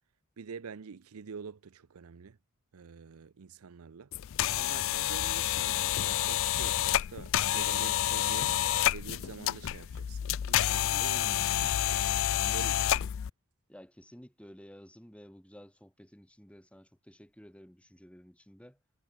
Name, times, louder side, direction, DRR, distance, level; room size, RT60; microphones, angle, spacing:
voice 1, 0.4-2.4 2.7-4.1 4.6-8.5 8.9-10.2 10.5-11.8 12.4-13.1, right 5 dB, 90° right, 0.6 m, -46 dB
sound 1, 4.1-13.3, left 12 dB, 60° left, 0.4 m, -29 dB
voice 2, 13.7-18.8, equal, 5° left, 4.1 m, -53 dB
head